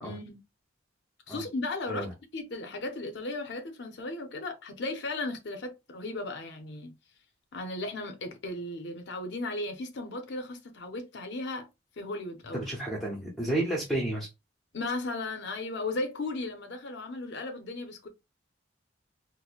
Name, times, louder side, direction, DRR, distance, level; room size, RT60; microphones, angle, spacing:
voice 1, 0.0-0.4 1.3-2.1 2.3-6.9 7.5-11.7 12.0-12.6 14.7-18.1, left 2 dB, 60° left, 0.6 m, -36 dB
voice 2, 12.5-14.3, right 1 dB, ahead, 0.7 m, -31 dB
4.2 x 2.1 x 2.4 m
head